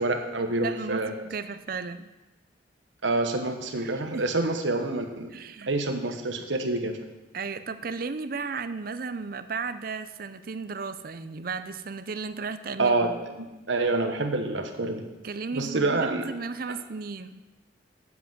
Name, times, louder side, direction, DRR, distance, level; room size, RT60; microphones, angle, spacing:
voice 1, 0.0-1.1 3.0-5.3 5.7-7.0 12.8-13.1 13.4-15.0 15.5-16.3, right 2 dB, 75° right, 5 dB, 1.3 m, -27 dB
voice 2, 0.6-2.1 3.7-4.3 5.3-5.8 7.3-13.2 15.2-17.4, right 4 dB, 50° right, 12 dB, 0.6 m, -35 dB
8.1 x 7.7 x 7.7 m, 1.1 s
head